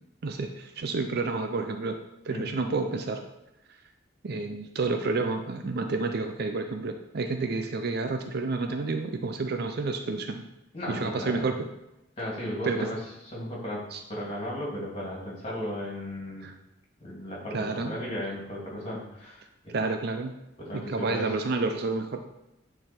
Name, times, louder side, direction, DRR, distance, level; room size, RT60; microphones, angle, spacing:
voice 1, 0.2-1.9 2.2-3.2 4.2-10.4 10.9-11.6 12.6-12.9 13.9-14.0 16.4-16.5 17.5-18.0 19.7-20.3 20.7-22.2, right 3 dB, 60° right, 6 dB, 0.5 m, -30 dB
voice 2, 10.7-11.5 12.2-13.0 13.3-16.5 17.0-19.7 20.6-21.4, left 1 dB, 35° left, -4 dB, 2.7 m, -35 dB
9.3 x 4.0 x 4.4 m, 0.88 s
head